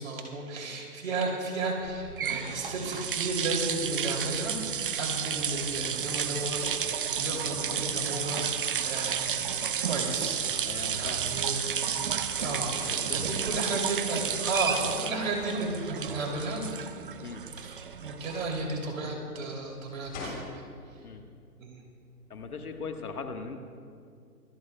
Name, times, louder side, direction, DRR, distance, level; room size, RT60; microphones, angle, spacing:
voice 1, 0.0-4.5 4.9-9.2 9.8-10.4 10.9-11.6 12.4-16.6 17.6-20.4 21.6-21.8, right 2 dB, 55° right, 0 dB, 3.0 m, -33 dB
sound 1, 1.8-18.9, right 7 dB, 35° right, 0.5 m, -32 dB
voice 2, 10.7-11.3 12.4-12.6 12.9-13.6 17.2-17.4 21.0-21.2 22.3-23.6, left 5 dB, 70° left, 5 dB, 1.5 m, -39 dB
sound 2, 12.0-22.9, left 2 dB, 20° left, 3.6 m, -51 dB
25.5 x 14.5 x 2.3 m, 2.3 s
figure-of-eight pair, 140°, 46 cm